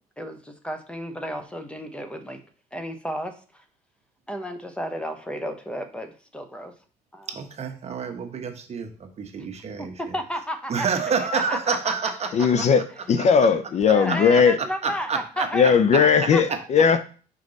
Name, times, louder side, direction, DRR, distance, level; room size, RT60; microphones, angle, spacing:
voice 1, 0.2-2.4 2.7-3.6 4.3-6.7 7.1-7.3 9.4-9.5 9.8-12.1 12.4-12.5 13.9-15.7 16.0-16.4, equal, 5° left, 7 dB, 0.9 m, -33 dB
voice 2, 7.3-9.9 10.7-12.6 14.8-15.7, right 5 dB, 40° right, 5 dB, 1.0 m, -28 dB
voice 3, 12.3-12.8 13.1-14.6 15.5-17.0, left 6 dB, 40° left, 11 dB, 0.5 m, -18 dB
5.3 x 4.9 x 4.0 m, 0.39 s
cardioid pair, 110°, 17 cm